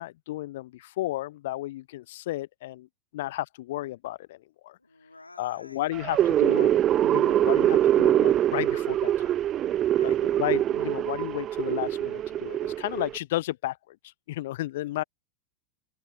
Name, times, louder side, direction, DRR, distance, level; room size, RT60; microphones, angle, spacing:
voice 1, 0.0-2.9 3.1-4.8 5.4-9.1 10.0-15.0, left 16 dB, 55° left, 0.5 m, -33 dB
voice 2, 4.8-6.4 9.9-10.2, left 2 dB, 85° left, 4.1 m, -51 dB
sound 1, 5.9-13.2, right 11 dB, 30° right, 0.4 m, -24 dB
figure-of-eight pair, 90°, 0 cm